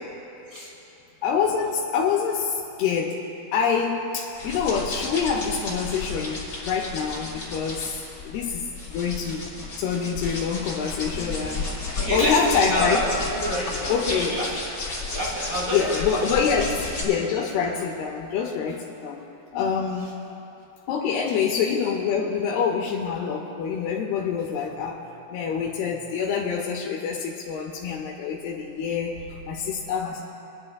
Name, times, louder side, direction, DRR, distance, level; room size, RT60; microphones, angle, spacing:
voice 1, 1.2-3.3 3.5-9.5 9.8-11.8 12.1-13.0 13.9-14.4 15.7-19.2 19.5-20.2 20.9-25.0 25.3-30.2, left 6 dB, 85° left, -1 dB, 2.7 m, -26 dB
sound 1, 4.3-17.0, left 3 dB, 35° left, 2.5 m, -33 dB
voice 2, 11.9-14.8 15.1-16.7, equal, 80° right, -4 dB, 0.7 m, -28 dB
27.0 x 10.5 x 2.3 m, 3.0 s
omnidirectional pair, 4.5 m